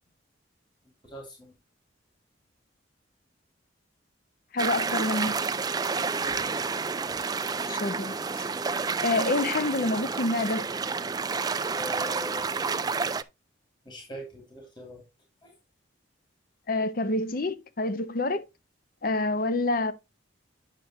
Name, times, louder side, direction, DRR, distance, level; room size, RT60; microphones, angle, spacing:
voice 1, 1.0-1.5 6.1-6.7 11.7-12.5 13.8-15.0 15.4-15.5, equal, 25° left, 2.7 m, -42 dB
voice 2, 4.5-5.4 7.7-8.5 9.0-10.7 16.7-18.4 19.0-19.9, left 2 dB, 45° left, 0.7 m, -27 dB
sound 1, 4.6-13.2, right 5 dB, 20° right, 0.3 m, -30 dB
9.3 x 6.6 x 3.0 m
head